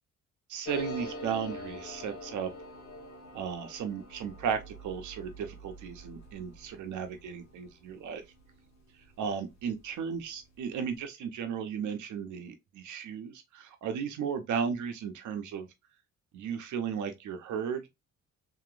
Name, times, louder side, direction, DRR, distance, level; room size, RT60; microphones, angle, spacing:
voice 1, 0.5-2.5 3.3-8.2 9.2-15.7 16.3-17.9, right 7 dB, 75° right, 0.9 m, -35 dB
sound 1, 0.6-9.8 10.1-10.2 10.4-11.0, equal, 60° left, 1.3 m, -45 dB
2.9 x 2.9 x 2.5 m
cardioid pair, 90°, 30 cm